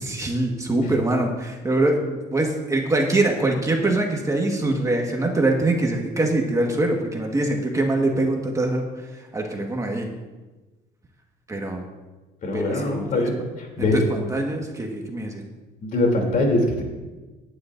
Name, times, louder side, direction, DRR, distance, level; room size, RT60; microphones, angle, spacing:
voice 1, 0.0-8.9 9.3-10.1 11.5-11.8 12.5-13.2 13.8-15.4, right 2 dB, 20° right, 1 dB, 1.6 m, -23 dB
voice 2, 12.4-14.1 15.8-16.8, left 2 dB, 55° left, 1 dB, 3.1 m, -22 dB
18.5 x 10.0 x 2.6 m, 1.2 s
cardioid pair, 110°, 17 cm